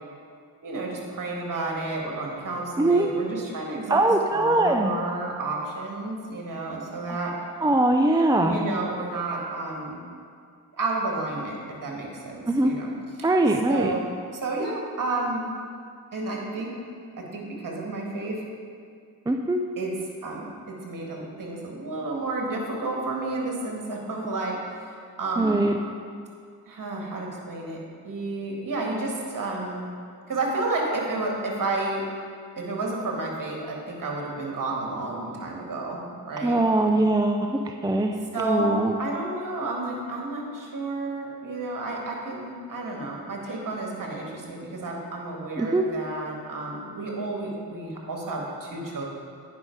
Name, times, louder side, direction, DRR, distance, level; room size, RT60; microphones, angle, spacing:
voice 1, 0.6-7.3 8.3-10.0 10.7-12.9 13.2-13.3 13.7-15.5 16.1-16.7 17.2-18.4 19.8-19.9 20.2-25.7 26.7-29.9 30.3-32.0 32.6-36.6 38.3-49.0, right 2 dB, 55° right, -1 dB, 2.0 m, -31 dB
voice 2, 2.8-3.1 3.9-4.9 7.1-7.2 7.6-8.6 12.5-12.7 13.2-13.9 19.3-19.6 25.4-25.7 36.4-38.9 45.6-45.8, right 2 dB, 10° right, 4 dB, 0.5 m, -22 dB
9.4 x 5.6 x 4.7 m, 2.2 s
supercardioid pair, 50°, 39 cm